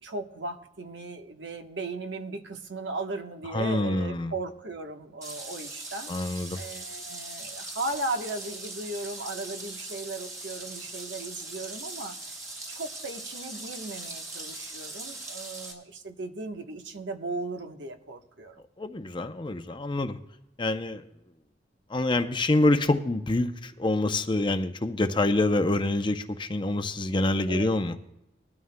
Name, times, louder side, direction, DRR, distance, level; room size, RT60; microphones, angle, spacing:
voice 1, 0.0-6.1 6.5-12.2 12.7-18.6 27.5-27.8, right 2 dB, 75° right, 6 dB, 1.1 m, -36 dB
voice 2, 3.5-4.3 6.1-6.6 18.8-20.2 20.6-21.0 21.9-28.0, left 2 dB, 25° left, 9 dB, 0.6 m, -26 dB
sound 1, 5.2-15.7, right 2 dB, 20° right, 2.9 m, -40 dB
20.5 x 13.0 x 2.2 m, 0.91 s
head